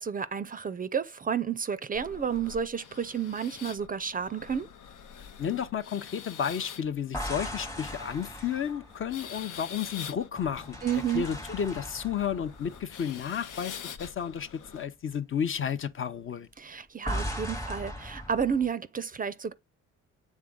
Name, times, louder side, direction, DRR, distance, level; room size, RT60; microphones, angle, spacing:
voice 1, 0.0-4.7 10.8-11.3 16.6-19.5, right 7 dB, 30° right, 0.4 m, -31 dB
sound 1, 1.9-14.9, left 8 dB, 90° left, 0.8 m, -46 dB
voice 2, 5.4-10.8 11.1-16.5, left 8 dB, 45° left, 0.6 m, -32 dB
sound 2, 7.1-9.9 10.4-13.8 14.1-14.3 17.1-18.7, equal, 10° left, 0.9 m, -38 dB
7.4 x 3.6 x 3.7 m
cardioid pair, 90°, 30 cm